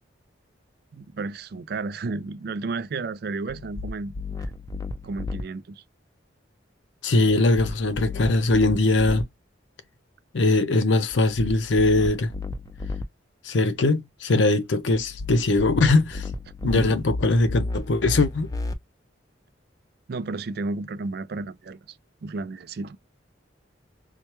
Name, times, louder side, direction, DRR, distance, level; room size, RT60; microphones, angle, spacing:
voice 1, 0.9-4.1 4.4-4.5 5.0-5.8 16.6-17.0 20.1-22.0 22.2-23.0, right 3 dB, 55° right, 0.4 m, -32 dB
sound 1, 3.5-5.4 7.3-9.2 11.1-13.0 14.9-18.7, left 3 dB, 20° left, 0.4 m, -33 dB
voice 2, 7.0-9.3 10.3-12.3 13.4-16.3 16.6-18.5, left 2 dB, 75° left, 0.6 m, -21 dB
4.6 x 2.1 x 3.0 m
head